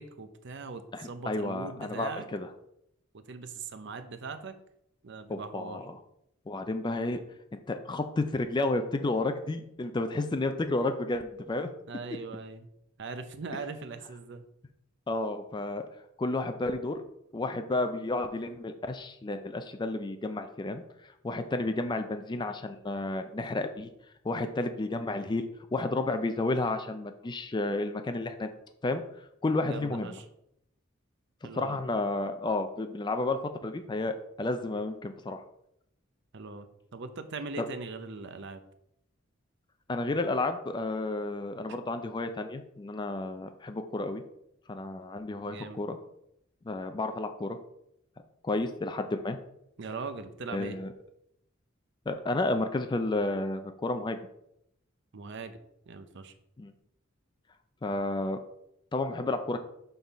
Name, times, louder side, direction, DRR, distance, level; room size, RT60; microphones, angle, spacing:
voice 1, 0.0-2.3 3.1-4.6 5.0-5.9 11.9-12.7 13.0-14.5 29.6-30.3 31.4-31.8 36.3-36.7 36.9-38.6 41.7-41.8 45.4-45.8 49.8-50.8 55.1-55.6 55.9-56.3, right 4 dB, 60° right, 9 dB, 0.6 m, -40 dB
voice 2, 0.9-2.5 5.3-5.9 6.5-7.2 7.7-11.7 15.1-15.9 16.2-17.0 17.3-20.8 21.2-23.9 24.2-28.5 28.8-29.0 29.4-30.2 31.5-35.4 37.6-37.7 39.9-44.2 44.7-46.0 46.7-47.6 48.4-49.4 50.5-50.9 52.1-54.2 56.6-56.7 57.8-58.4 58.9-59.6, left 2 dB, 25° left, 7 dB, 0.4 m, -31 dB
6.9 x 3.9 x 4.1 m, 0.78 s
head